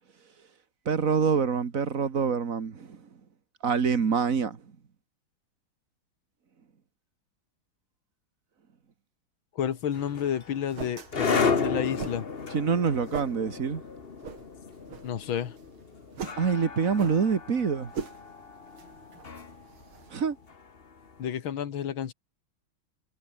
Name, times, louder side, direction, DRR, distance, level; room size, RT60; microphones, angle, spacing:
voice 1, 0.9-3.0 3.6-4.6 12.5-13.8 16.4-17.9 20.1-20.4, right 6 dB, 40° right, 2.0 m, -26 dB
voice 2, 9.6-12.3 15.0-15.6 21.2-22.1, left 9 dB, 75° left, 2.3 m, -30 dB
sound 1, 9.6-20.3, right 6 dB, 90° right, 3.2 m, -43 dB
sound 2, 9.9-21.1, left 5 dB, 30° left, 1.5 m, -34 dB
omnidirectional pair, 2.2 m